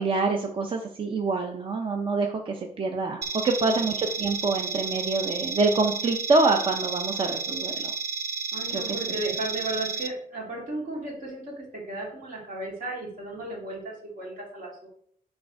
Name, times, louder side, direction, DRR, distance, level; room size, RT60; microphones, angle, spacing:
voice 1, 0.0-7.9 8.7-8.8 9.3-9.4, right 3 dB, 35° right, 4 dB, 0.5 m, -26 dB
sound 1, 3.2-10.1, right 5 dB, 90° right, 0.7 m, -32 dB
voice 2, 8.5-14.9, right 2 dB, 60° right, -2 dB, 2.2 m, -35 dB
6.3 x 3.4 x 4.8 m, 0.64 s
wide cardioid pair, 165°, 16 cm